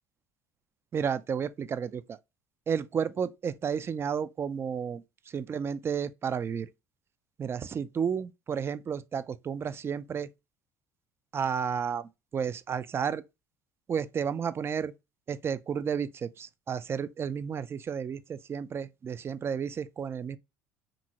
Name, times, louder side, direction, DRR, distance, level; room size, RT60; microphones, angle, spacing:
voice 1, 0.9-2.2 2.7-6.7 7.4-10.3 11.3-13.2 13.9-14.9 15.3-20.4, right 7 dB, 30° right, 0.3 m, -32 dB
2.7 x 2.6 x 2.9 m
hypercardioid pair, 80°, 8 cm